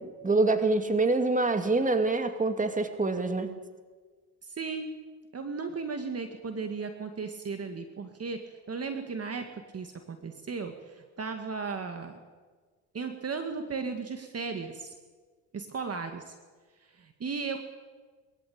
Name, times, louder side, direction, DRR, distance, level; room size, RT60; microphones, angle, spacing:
voice 1, 0.0-3.6, right 3 dB, 20° right, 8 dB, 2.4 m, -26 dB
voice 2, 4.4-4.9 5.3-12.2 12.9-14.9 15.5-16.3 17.0-17.6, right 4 dB, 35° right, 7 dB, 2.0 m, -36 dB
22.0 x 14.0 x 8.7 m, 1.5 s
supercardioid pair, 75°, 40 cm